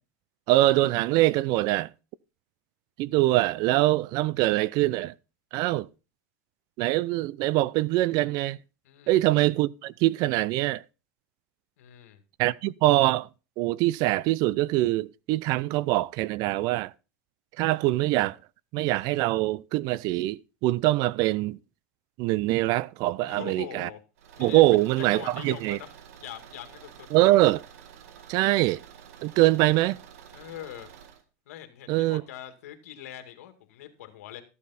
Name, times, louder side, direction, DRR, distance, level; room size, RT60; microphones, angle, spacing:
voice 1, 0.5-1.9 3.0-5.1 5.5-5.9 6.8-8.6 9.1-10.8 12.4-13.3 13.6-16.9 17.6-18.4 18.7-21.6 22.2-23.9 24.4-25.8 27.1-27.6 28.3-28.8 29.2-30.0 31.9-32.2, right 17 dB, 55° right, 0.5 m, -23 dB
voice 2, 8.8-9.2 11.8-12.2 23.3-24.0 24.4-27.1 30.3-30.9 31.5-34.4, left 12 dB, 80° left, 2.2 m, -43 dB
Car / Engine, 24.2-31.2, right 8 dB, 80° right, 1.7 m, -49 dB
13.5 x 8.4 x 4.2 m
supercardioid pair, 115°, 8 cm